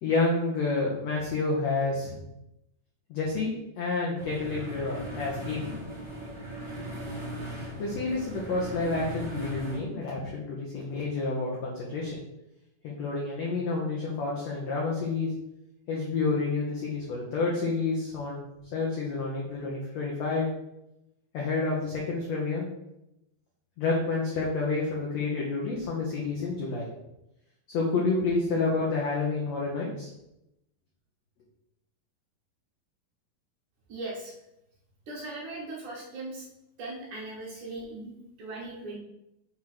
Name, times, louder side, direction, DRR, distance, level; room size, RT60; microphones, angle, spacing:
voice 1, 0.0-2.2 3.1-5.7 7.8-12.2 12.8-15.3 15.9-18.4 18.7-20.5 21.3-22.6 23.8-26.9 27.7-30.1, left 3 dB, 65° left, -3 dB, 1.7 m, -29 dB
sound 1, 4.2-9.8, right 1 dB, 15° right, 1.1 m, -38 dB
voice 2, 33.9-34.3 35.1-36.4 36.8-39.0, right 2 dB, 65° right, -3 dB, 2.5 m, -39 dB
6.1 x 3.8 x 5.8 m, 0.88 s
omnidirectional pair, 4.3 m